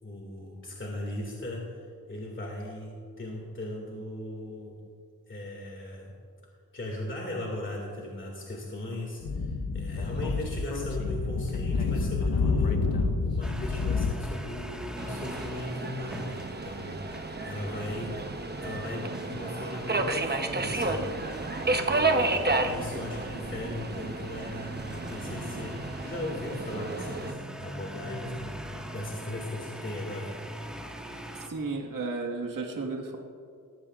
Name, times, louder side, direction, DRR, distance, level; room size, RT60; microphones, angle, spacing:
voice 1, 0.0-4.8 5.3-6.1 6.7-18.2 18.6-21.1 21.7-28.6 28.9-30.3, left 1 dB, 35° left, -2 dB, 2.2 m, -38 dB
Speech / Wind, 9.2-14.1, left 4 dB, 85° left, 1.1 m, -28 dB
sound 1, 13.4-31.5, equal, ahead, 1.5 m, -42 dB
Subway metro underground, 15.0-27.3, right 2 dB, 30° right, 0.9 m, -32 dB
voice 2, 31.5-33.2, right 3 dB, 65° right, 1 dB, 1.6 m, -33 dB
20.0 x 15.0 x 2.4 m, 2.4 s
wide cardioid pair, 90°, 35 cm